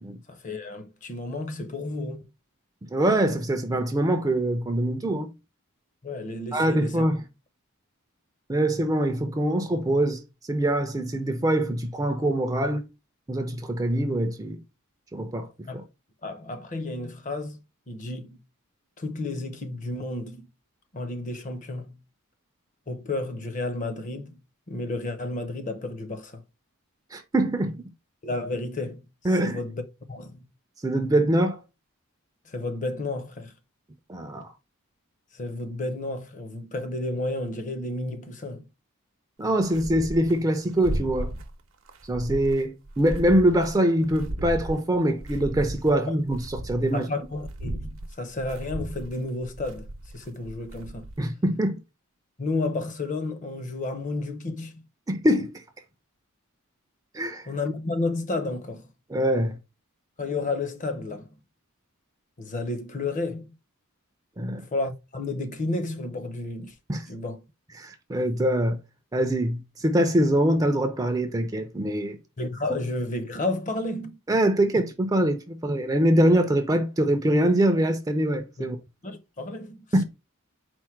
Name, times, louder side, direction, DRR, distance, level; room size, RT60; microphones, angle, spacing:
voice 1, 0.3-2.3 6.0-7.1 15.7-15.8 16.2-17.6 17.9-18.4 19.0-20.5 20.9-21.9 22.9-24.4 24.7-26.4 28.2-29.0 29.4-29.8 30.1-30.4 32.4-33.5 35.3-38.7 45.9-46.1 46.9-49.9 50.1-51.1 52.4-54.8 57.5-58.9 60.2-61.3 62.4-63.6 64.6-66.7 67.1-67.4 72.4-74.2 78.6-78.7 79.0-79.9, left 2 dB, 35° left, 0.6 m, -31 dB
voice 2, 2.9-5.3 6.5-7.2 8.5-10.2 10.5-12.9 13.3-14.6 15.1-15.5 15.7-15.8 27.1-27.8 29.2-29.6 30.8-31.6 34.1-34.5 39.4-41.3 42.1-47.1 51.2-51.8 55.1-55.5 57.1-57.5 59.1-59.6 64.4-64.6 66.9-67.0 67.8-68.8 69.1-72.2 74.3-78.8 79.9-80.0, right 1 dB, 15° right, 0.4 m, -24 dB
sound 1, 39.5-40.4 40.7-41.5 41.9-43.8 44.0-46.0 46.3-51.2, right 1 dB, 65° right, 0.7 m, -35 dB
4.4 x 2.1 x 4.4 m
head